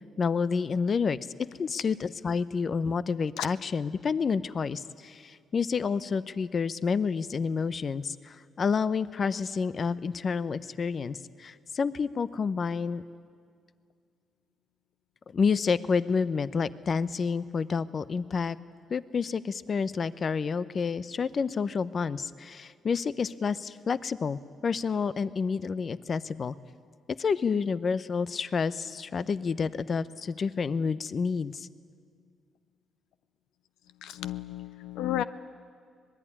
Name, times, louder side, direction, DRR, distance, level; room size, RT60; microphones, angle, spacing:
voice 1, 0.2-1.2 1.6-13.0 15.3-18.6 18.9-26.5 27.2-31.7, left 5 dB, 45° left, 16 dB, 0.7 m, -29 dB
voice 2, 34.0-35.2, left 12 dB, 85° left, 14 dB, 0.6 m, -33 dB
25.0 x 20.0 x 10.0 m, 2.2 s
cardioid pair, 90°, 0 cm